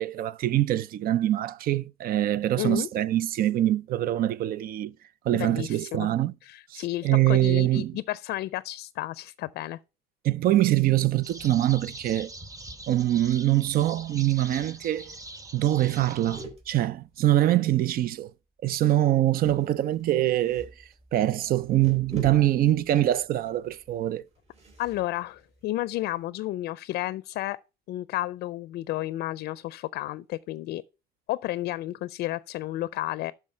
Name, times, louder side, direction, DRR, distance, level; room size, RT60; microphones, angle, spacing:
voice 1, 0.0-4.9 5.2-6.4 6.7-8.0 10.2-12.3 12.9-15.2 15.5-18.3 18.6-20.7 21.1-24.2, right 14 dB, 60° right, 0.5 m, -24 dB
voice 2, 2.6-2.9 5.3-6.1 6.4-9.8 24.8-27.6 27.9-30.8 31.3-33.3, left 16 dB, 75° left, 0.4 m, -32 dB
sound 1, 11.2-16.4, right 2 dB, 20° right, 1.2 m, -43 dB
sound 2, 15.3-15.5 15.8-18.2 19.3-26.2, right 2 dB, 40° right, 4.2 m, -47 dB
12.0 x 4.6 x 5.6 m
cardioid pair, 110°, 17 cm